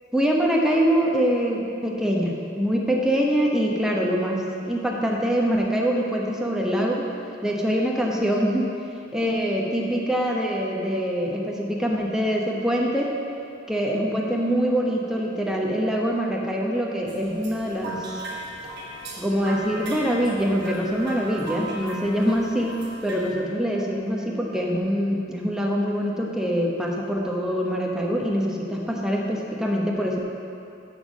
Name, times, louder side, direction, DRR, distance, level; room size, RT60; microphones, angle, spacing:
voice 1, 0.1-7.1 7.4-8.7 9.1-13.1 13.7-18.2 19.2-30.2, equal, 5° right, -2 dB, 0.9 m, -24 dB
sound 1, 17.1-23.3, right 1 dB, 55° right, 1.3 m, -37 dB
7.2 x 5.9 x 7.2 m, 2.7 s
head